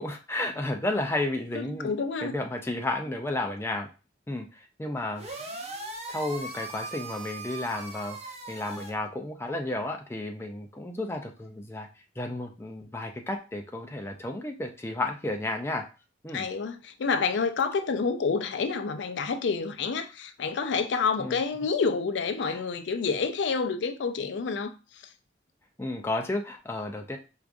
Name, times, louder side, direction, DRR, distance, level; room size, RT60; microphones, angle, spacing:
voice 1, 0.0-1.9 2.2-3.9 4.3-5.3 6.1-8.2 8.5-11.9 12.2-15.8 16.2-16.5 21.2-21.4 22.5-22.6 25.8-27.2, left 2 dB, 15° left, 0.4 m, -32 dB
voice 2, 1.5-2.3 16.3-24.7, left 5 dB, 85° left, 0.4 m, -28 dB
sound 1, 5.2-8.9, right 2 dB, 35° right, 0.6 m, -39 dB
4.6 x 2.4 x 2.5 m
head